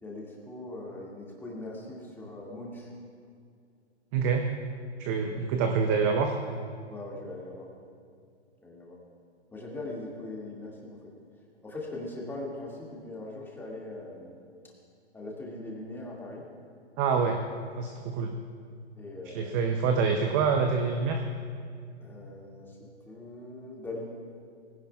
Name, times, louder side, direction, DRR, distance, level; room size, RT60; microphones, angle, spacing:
voice 1, 0.0-2.9 5.2-5.5 6.9-7.7 8.6-9.0 9.5-11.1 11.6-14.4 15.1-16.5 19.0-19.8 22.0-24.1, left 2 dB, 5° left, -3 dB, 2.1 m, -41 dB
voice 2, 4.1-4.5 5.0-6.3 17.0-17.4 17.8-18.3 19.3-21.2, right 5 dB, 20° right, 5 dB, 0.5 m, -26 dB
19.0 x 16.5 x 2.4 m, 2.3 s
hypercardioid pair, 130°, 35 cm